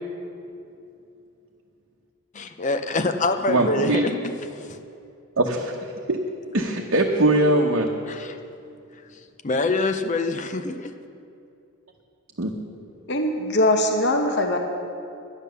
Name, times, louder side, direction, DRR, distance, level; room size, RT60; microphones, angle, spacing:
voice 1, 2.4-4.8 8.1-8.4 9.1-10.9, left 3 dB, 35° left, 7 dB, 0.6 m, -26 dB
voice 2, 3.5-4.1 5.4-5.7 6.1-6.2 6.5-7.9 12.4-12.5, right 1 dB, 60° right, 0 dB, 0.9 m, -21 dB
voice 3, 13.1-14.6, left 1 dB, 50° left, 3 dB, 1.0 m, -21 dB
12.0 x 10.5 x 6.9 m, 2.6 s
head